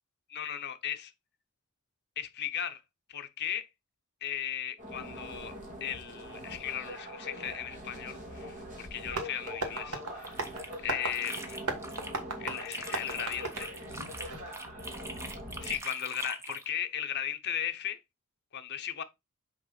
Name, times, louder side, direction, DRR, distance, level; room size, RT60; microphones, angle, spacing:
voice 1, 0.3-1.1 2.2-2.8 3.1-3.7 4.2-5.5 5.8-10.5 10.8-11.6 12.4-13.7 15.6-18.0 18.5-19.0, left 9 dB, 50° left, 0.8 m, -36 dB
sound 1, 4.8-15.8, equal, 35° right, 2.3 m, -43 dB
Tap, 9.1-14.6, right 3 dB, 85° right, 1.5 m, -38 dB
sound 2, 10.0-12.2 12.5-16.7, right 2 dB, 10° right, 0.9 m, -43 dB
6.1 x 4.9 x 4.0 m
head